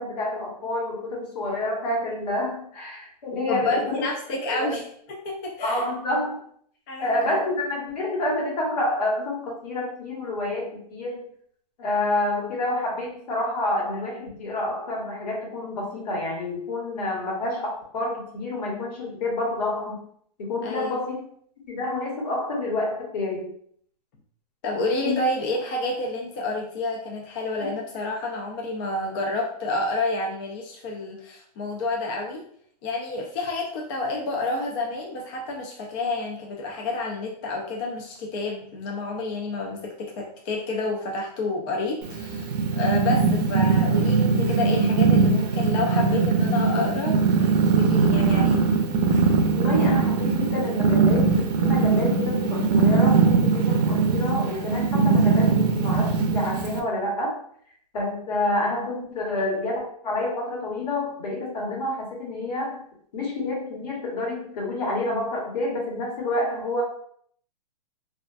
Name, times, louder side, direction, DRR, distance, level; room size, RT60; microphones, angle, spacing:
voice 1, 0.0-4.0 4.5-4.8 5.6-6.4 7.0-11.2 11.8-20.0 20.4-21.2 21.7-23.5 25.0-25.2 27.6-27.7 49.5-57.4 57.9-62.8 63.1-66.8, left 2 dB, 75° left, -2 dB, 1.2 m, -28 dB
voice 2, 3.5-4.8 5.1-5.8 6.9-7.1 20.6-21.0 24.6-32.4 32.8-48.6, left 2 dB, 30° left, 0 dB, 0.4 m, -29 dB
Purr, 42.0-56.8, right 4 dB, 80° right, 0.5 m, -21 dB
2.4 x 2.1 x 2.4 m, 0.62 s
hypercardioid pair, 135°, 21 cm